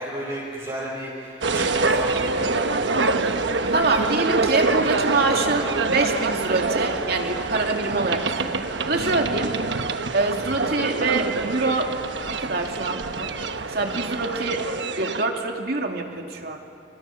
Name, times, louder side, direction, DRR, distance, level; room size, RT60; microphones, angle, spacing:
voice 1, 0.0-2.9 3.2-4.0 4.4-5.7, equal, 25° right, -8 dB, 6.4 m, -35 dB
sound 1, 1.4-15.2, right 3 dB, 85° right, 1.2 m, -25 dB
voice 2, 3.7-8.5 8.9-9.5 10.1-11.9 12.3-13.3 13.7-14.6 15.0-16.6, right 3 dB, 60° right, 2 dB, 2.6 m, -25 dB
30.0 x 27.5 x 5.9 m, 2.8 s
head